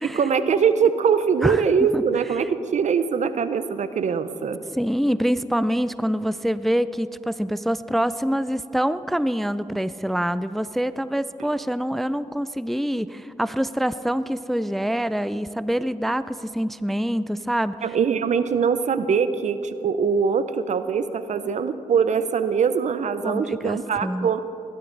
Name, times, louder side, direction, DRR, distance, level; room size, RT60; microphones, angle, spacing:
voice 1, 0.1-4.6 17.8-24.4, right 6 dB, 65° right, 12 dB, 0.7 m, -22 dB
voice 2, 4.7-17.8 23.2-24.3, equal, ahead, 15 dB, 0.4 m, -25 dB
19.0 x 11.5 x 3.9 m, 2.7 s
cardioid pair, 60°, 13 cm